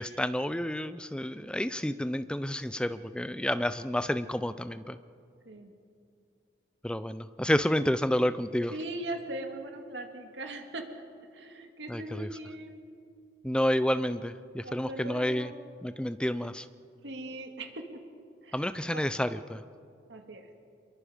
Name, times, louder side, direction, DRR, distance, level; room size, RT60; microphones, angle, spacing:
voice 1, 0.0-5.0 6.8-8.7 11.9-12.3 13.4-15.5 15.8-16.7 18.5-19.6, equal, 5° left, 12 dB, 0.5 m, -30 dB
voice 2, 8.7-10.8 11.3-12.8 14.6-15.6 17.0-17.8 18.4-18.6 18.9-19.0 20.1-20.5, right 1 dB, 70° right, 4 dB, 2.2 m, -40 dB
26.5 x 22.5 x 5.1 m, 2.4 s
head